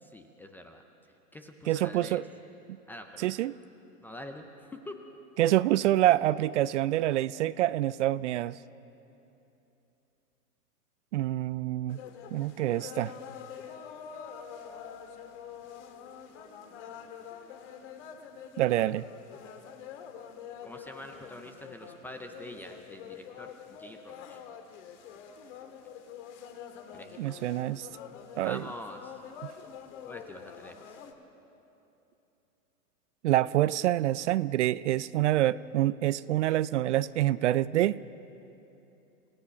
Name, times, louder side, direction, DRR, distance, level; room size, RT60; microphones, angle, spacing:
voice 1, 0.0-0.8 1.3-2.2 2.9-3.3 4.0-4.4 4.9-5.0 20.6-24.4 26.9-27.3 28.4-29.2 30.1-31.0, left 1 dB, 5° left, 5 dB, 0.4 m, -45 dB
voice 2, 1.7-2.2 3.2-3.5 5.4-8.6 11.1-12.0 12.3-13.1 18.6-19.0 27.2-27.9 28.3-28.6 33.2-38.0, right 14 dB, 50° right, 18 dB, 0.5 m, -26 dB
sound 1, 11.9-31.1, left 8 dB, 50° left, 2.0 m, -46 dB
28.0 x 16.0 x 5.9 m, 2.9 s
hypercardioid pair, 120°, 46 cm